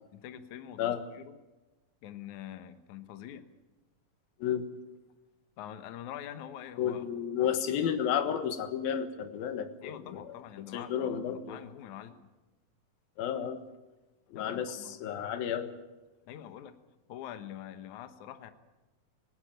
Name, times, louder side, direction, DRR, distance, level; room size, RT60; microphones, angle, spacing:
voice 1, 0.1-1.4 2.0-3.4 5.6-7.5 9.8-12.2 14.4-15.0 16.3-16.8 17.1-18.5, left 10 dB, 65° left, 10 dB, 2.4 m, -45 dB
voice 2, 6.8-10.3 10.7-11.6 13.2-13.6 14.3-15.7, left 9 dB, 80° left, 10 dB, 3.2 m, -32 dB
18.5 x 18.5 x 8.9 m, 1.1 s
omnidirectional pair, 4.2 m